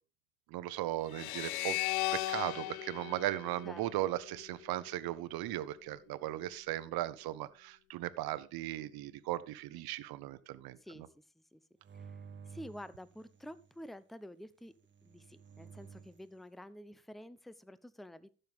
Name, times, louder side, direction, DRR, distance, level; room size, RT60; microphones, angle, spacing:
voice 1, 0.5-1.8 2.1-10.8, right 15 dB, 60° right, 1.0 m, -37 dB
sound 1, 1.1-4.4, left 17 dB, 85° left, 0.7 m, -37 dB
voice 2, 10.8-11.6 11.9-14.7 15.0-18.3, equal, ahead, 0.7 m, -50 dB
sound 2, 11.8-13.8 14.8-16.3, right 6 dB, 25° right, 1.2 m, -53 dB
14.5 x 7.0 x 3.6 m
hypercardioid pair, 80°, 42 cm